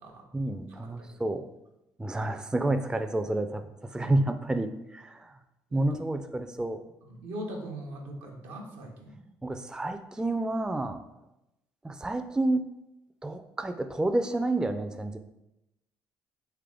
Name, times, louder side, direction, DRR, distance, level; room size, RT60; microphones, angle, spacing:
voice 1, 0.3-1.5 2.0-5.3 5.7-6.8 9.4-11.0 11.8-12.7 13.2-15.2, right 2 dB, 5° right, 8 dB, 0.3 m, -29 dB
voice 2, 5.7-6.0 7.0-9.2, right 1 dB, 80° right, 1 dB, 0.8 m, -41 dB
3.4 x 3.3 x 3.5 m, 0.89 s
hypercardioid pair, 60°, 10 cm